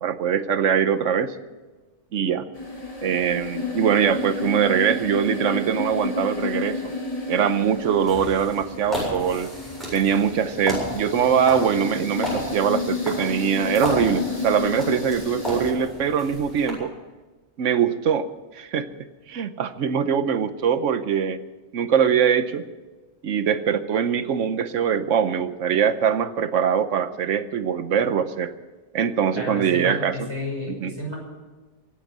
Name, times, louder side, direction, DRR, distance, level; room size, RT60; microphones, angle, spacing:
voice 1, 0.0-1.3 2.1-2.4 3.0-6.9 7.3-9.5 9.9-16.9 17.6-18.3 18.5-21.4 21.7-22.6 23.2-28.5 28.9-30.3 30.8-30.9, right 8 dB, 90° right, 12 dB, 1.2 m, -22 dB
sound 1, 2.5-15.7, left 3 dB, 30° left, 1.8 m, -31 dB
sound 2, 8.0-16.7, left 1 dB, ahead, 7.7 m, -33 dB
voice 2, 29.3-31.2, left 1 dB, 20° right, -2 dB, 6.0 m, -31 dB
24.0 x 8.2 x 7.4 m, 1.2 s
omnidirectional pair, 1.2 m